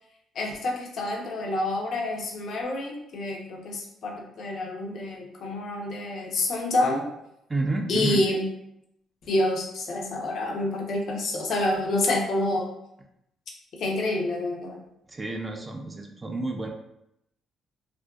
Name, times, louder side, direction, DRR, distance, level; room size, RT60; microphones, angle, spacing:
voice 1, 0.3-7.1 7.9-8.5 9.3-12.7 13.8-14.8, left 2 dB, 65° left, 0 dB, 0.5 m, -28 dB
voice 2, 7.5-8.2 15.1-16.7, right 2 dB, 25° right, 2 dB, 0.3 m, -30 dB
2.5 x 2.2 x 2.2 m, 0.80 s
cardioid pair, 90°, 0 cm